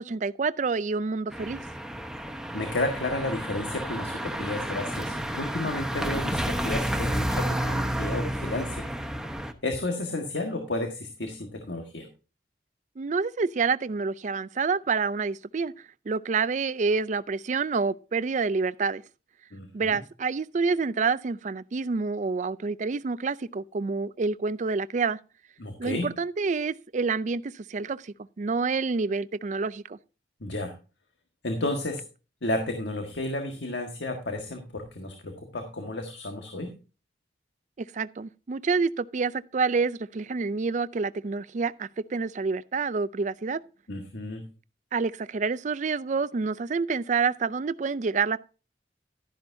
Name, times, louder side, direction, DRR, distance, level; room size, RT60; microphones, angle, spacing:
voice 1, 0.0-1.6 13.0-15.7 16.1-19.0 19.7-25.2 25.8-30.0 37.8-43.6 44.9-48.4, right 4 dB, 45° right, 0.4 m, -28 dB
sound 1, 1.3-9.5, equal, 5° right, 0.8 m, -31 dB
voice 2, 2.5-8.9 9.6-12.1 19.5-20.0 25.6-26.1 30.4-30.7 31.4-32.0 32.4-36.7 43.9-44.4, left 2 dB, 80° left, 1.6 m, -32 dB
12.0 x 10.5 x 2.7 m
head